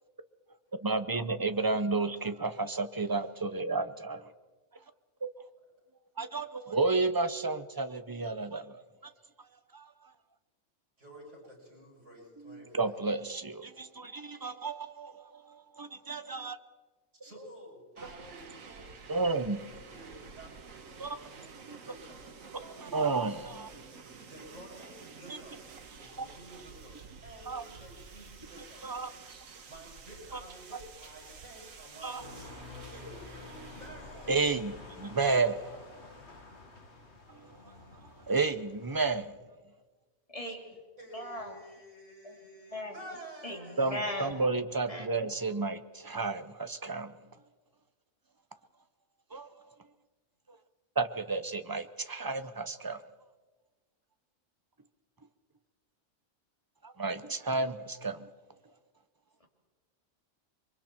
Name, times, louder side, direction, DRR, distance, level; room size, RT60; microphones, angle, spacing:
voice 1, 0.8-4.3 5.2-5.5 6.2-8.8 9.7-9.9 12.4-15.3 15.8-16.6 19.1-19.6 21.0-21.2 21.7-21.8 22.6-23.7 25.3-25.4 26.2-26.3 27.5-27.6 28.8-29.1 30.3-30.4 32.0-32.2 34.3-35.8 37.3-37.4 38.3-39.3 43.8-47.1 49.3-49.5 51.0-53.0 56.8-58.3, right 3 dB, 20° right, 10 dB, 0.7 m, -32 dB
voice 2, 11.0-12.9 17.2-22.2 22.5-23.1 24.3-25.6 26.0-28.9 29.6-32.5 32.9-34.5 41.0-44.3, right 1 dB, 65° right, -2 dB, 8.5 m, -51 dB
sound 1, 18.0-33.9, right 5 dB, 80° right, 1.7 m, -50 dB
sound 2, 32.2-39.3, left 3 dB, 55° left, 2.4 m, -49 dB
voice 3, 40.3-40.7 41.1-41.6 42.2-42.4 42.7-43.0 43.4-44.5 44.9-45.2, left 1 dB, 25° left, 1 dB, 2.9 m, -38 dB
28.5 x 23.5 x 4.5 m, 1.4 s
omnidirectional pair, 1.4 m